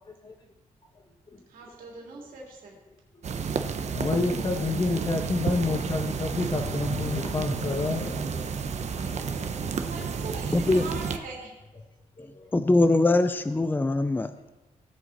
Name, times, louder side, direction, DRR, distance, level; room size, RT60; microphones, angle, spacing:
voice 1, 1.5-2.8 9.7-11.6, right 3 dB, 85° right, -1 dB, 2.9 m, -40 dB
sound 1, 3.2-11.2, right 6 dB, 55° right, 0.9 m, -31 dB
voice 2, 3.9-8.6 9.1-9.7 12.2-12.5, left 3 dB, 30° left, 3 dB, 1.3 m, -29 dB
voice 3, 10.5-10.8 12.5-14.3, left 2 dB, 15° left, 10 dB, 0.5 m, -22 dB
17.0 x 7.6 x 4.1 m, 1.1 s
cardioid pair, 105°, 14 cm